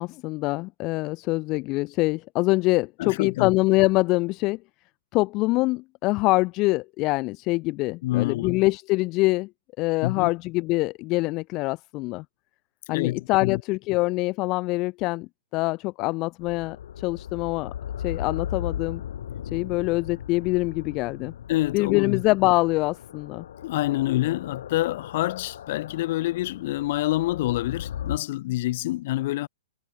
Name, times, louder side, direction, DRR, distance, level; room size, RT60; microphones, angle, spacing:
voice 1, 0.0-4.6 5.1-9.5 9.8-12.2 12.9-17.7 18.0-19.0 19.5-21.3 21.7-23.4, left 22 dB, 30° left, 3.3 m, -24 dB
voice 2, 3.0-3.5 8.0-8.6 10.0-10.3 12.9-13.6 21.5-22.2 23.6-29.5, left 16 dB, 45° left, 4.7 m, -27 dB
sound 1, 16.4-28.2, left 10 dB, 65° left, 7.1 m, -37 dB
hypercardioid pair, 160°, 0 cm